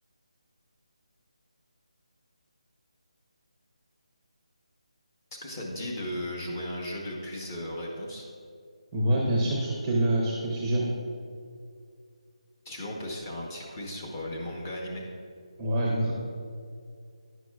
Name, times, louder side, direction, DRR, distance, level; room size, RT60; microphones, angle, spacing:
voice 1, 5.4-8.3 12.6-15.0, left 1 dB, 25° left, -2 dB, 0.9 m, -36 dB
voice 2, 8.9-10.9 15.6-16.1, right 1 dB, 10° right, -4 dB, 0.6 m, -26 dB
10.0 x 6.0 x 2.3 m, 2.2 s
figure-of-eight pair, 170°, 4 cm